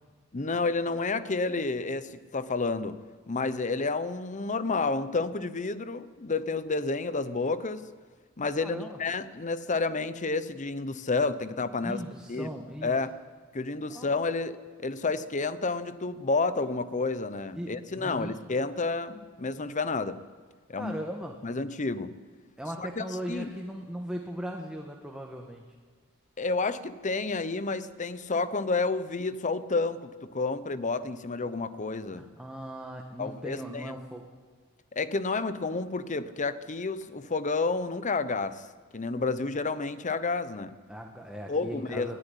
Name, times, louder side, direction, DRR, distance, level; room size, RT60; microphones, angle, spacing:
voice 1, 0.3-3.0 3.3-7.8 8.4-12.0 12.3-12.5 12.8-13.1 13.5-20.2 20.7-21.0 21.4-22.1 22.8-23.5 26.4-32.2 33.2-33.9 34.9-38.6 38.9-40.7 41.5-42.2, left 3 dB, 35° left, 14 dB, 0.8 m, -30 dB
voice 2, 8.6-9.0 11.8-13.0 13.9-14.1 17.5-18.4 20.8-21.4 22.6-25.6 32.2-34.2 40.9-42.2, equal, 5° right, 1 dB, 1.4 m, -38 dB
20.0 x 14.0 x 10.0 m, 1.5 s
head